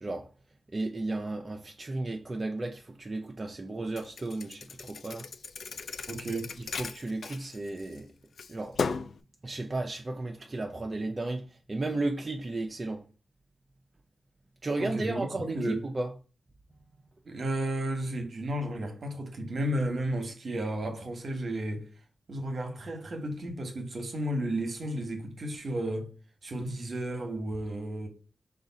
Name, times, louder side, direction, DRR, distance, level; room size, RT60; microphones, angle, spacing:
voice 1, 0.7-5.3 6.6-8.1 8.5-8.8 9.4-13.0 14.6-16.1, right 2 dB, 40° right, 0.6 m, -34 dB
Thump thud, 4.0-8.0 8.4-9.2, left 5 dB, 75° left, 0.4 m, -36 dB
voice 2, 6.1-6.5 14.8-15.8 17.2-21.9 22.3-26.1 26.4-28.1, right 1 dB, 65° right, 1.1 m, -33 dB
4.9 x 2.4 x 4.0 m
cardioid pair, 50°, 0 cm